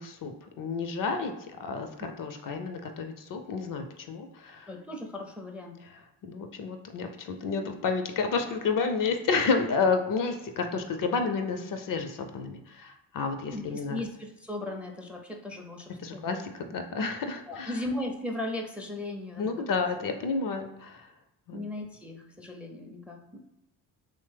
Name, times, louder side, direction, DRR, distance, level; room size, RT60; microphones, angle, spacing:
voice 1, 0.0-4.7 5.8-14.0 16.0-17.8 19.4-21.1 21.5-21.6, left 4 dB, 55° left, 6 dB, 0.5 m, -31 dB
voice 2, 4.7-5.7 13.5-14.1 14.4-16.3 17.5-19.4 21.5-23.4, left 1 dB, 5° right, 1 dB, 0.4 m, -37 dB
2.9 x 2.1 x 3.2 m, 0.91 s
supercardioid pair, 55°, 42 cm